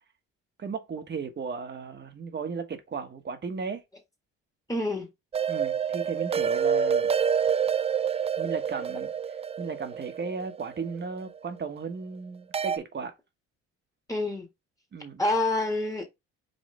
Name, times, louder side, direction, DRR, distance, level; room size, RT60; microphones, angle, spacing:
voice 1, 0.6-3.8 5.5-7.1 8.4-9.1 9.6-13.1 14.9-15.2, right 5 dB, 35° right, 1.2 m, -35 dB
voice 2, 4.7-5.1 14.1-14.5 15.2-16.1, left 2 dB, 10° left, 1.6 m, -27 dB
sound 1, 5.3-11.4 12.5-12.8, right 7 dB, 20° right, 0.3 m, -27 dB
5.3 x 3.1 x 3.2 m
supercardioid pair, 80°, 30 cm